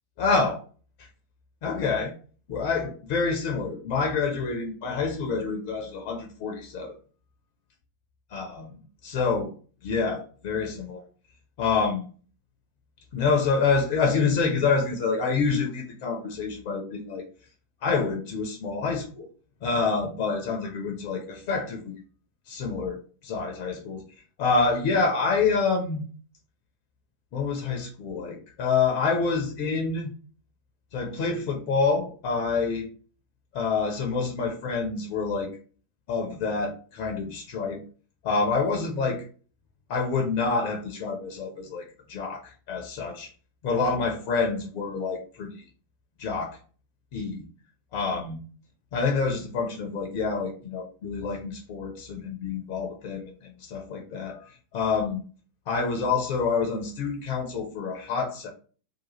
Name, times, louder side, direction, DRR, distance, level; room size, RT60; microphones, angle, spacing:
voice 1, 0.2-0.6 1.6-2.1 2.5-6.9 8.3-8.7 9.0-9.5 9.8-11.0 11.6-12.0 13.1-17.2 17.8-19.3 19.6-21.9 22.5-24.0 24.4-26.0 27.3-30.1 30.9-32.9 33.5-35.5 36.1-37.8 38.2-39.2 39.9-43.3 43.6-45.6 46.2-46.6 47.1-47.5 47.9-48.4 48.9-54.4 54.7-55.2 55.7-58.5, left 4 dB, 45° left, 2 dB, 0.7 m, -27 dB
3.0 x 2.4 x 4.0 m, 0.39 s
figure-of-eight pair, 90°, 0 cm